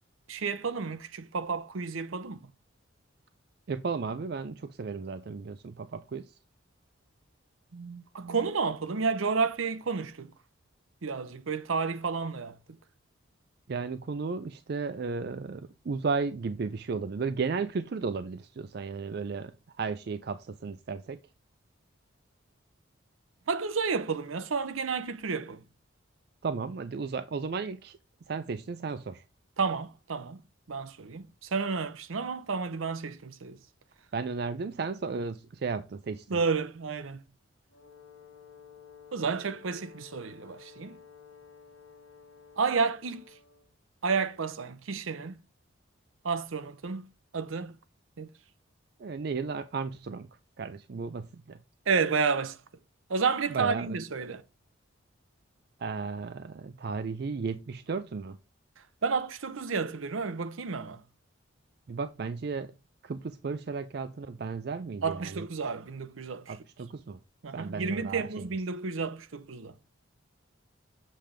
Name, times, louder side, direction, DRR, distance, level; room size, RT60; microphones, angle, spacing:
voice 1, 0.3-2.4 7.7-10.3 11.0-12.6 23.5-25.6 29.6-30.4 30.7-33.6 36.3-37.2 39.1-41.0 42.6-43.2 44.0-45.3 46.2-47.0 47.3-47.7 48.2-48.3 51.9-52.6 53.1-54.4 59.0-61.0 65.0-66.6 67.4-69.7, right 5 dB, 85° right, 0.7 m, -31 dB
voice 2, 3.7-6.3 13.7-19.5 19.8-21.2 26.4-28.0 28.3-29.2 34.1-36.2 49.0-50.3 50.6-51.6 53.5-54.0 55.8-58.4 61.9-62.7 63.0-65.5 66.5-67.2 67.5-68.5, right 4 dB, 50° right, 0.4 m, -34 dB
Brass instrument, 37.7-43.7, left 7 dB, 75° left, 1.0 m, -53 dB
7.5 x 3.4 x 5.0 m
head